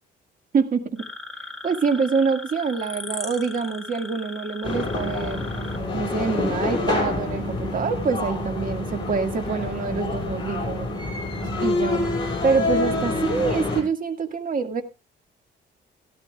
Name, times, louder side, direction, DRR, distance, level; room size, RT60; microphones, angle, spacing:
voice 1, 0.5-1.1 1.6-5.5 5.9-10.9 11.6-12.1 12.4-14.8, right 5 dB, 45° right, 6 dB, 2.0 m, -25 dB
sound 1, 1.0-5.8, left 2 dB, ahead, 2.7 m, -38 dB
sound 2, 4.6-13.8, left 2 dB, 20° left, 7.4 m, -27 dB
15.5 x 13.0 x 2.4 m, 0.26 s
cardioid pair, 90°, 20 cm